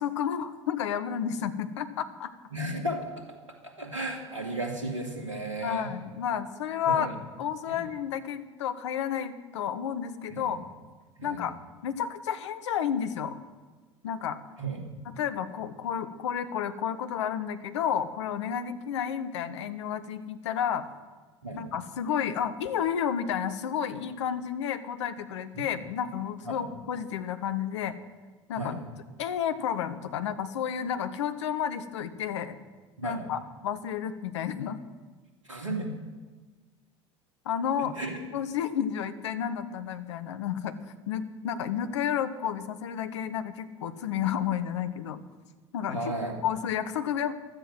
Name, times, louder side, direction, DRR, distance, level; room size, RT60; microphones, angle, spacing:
voice 1, 0.0-2.3 5.6-7.1 7.4-10.6 11.2-11.5 11.8-13.4 14.0-14.4 15.0-20.8 21.5-27.9 28.5-28.8 29.2-32.6 33.0-34.8 37.4-38.0 38.3-40.7 41.1-45.2 45.7-46.1 46.4-47.3, left 8 dB, 70° left, 11 dB, 1.2 m, -31 dB
voice 2, 2.5-3.1 3.6-5.9 6.9-7.1 7.7-7.8 10.3-10.5 11.2-11.4 14.6-14.8 21.4-21.6 25.5-25.6 26.5-26.6 28.6-28.8 33.0-33.2 35.5-35.9 37.8-38.2 45.9-46.4, right 1 dB, 85° right, 2 dB, 2.7 m, -34 dB
15.0 x 12.5 x 6.2 m, 1.4 s
figure-of-eight pair, 70°, 16 cm